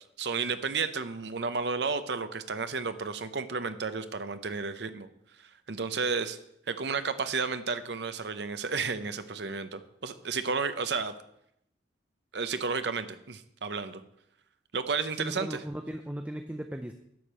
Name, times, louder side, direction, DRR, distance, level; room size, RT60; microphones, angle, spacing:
voice 1, 0.2-5.1 5.7-6.4 6.7-11.1 12.3-14.0 14.7-15.6, right 4 dB, 65° right, 11 dB, 0.7 m, -32 dB
voice 2, 15.1-16.9, right 1 dB, 5° right, 6 dB, 0.4 m, -37 dB
11.0 x 5.2 x 7.4 m, 0.76 s
head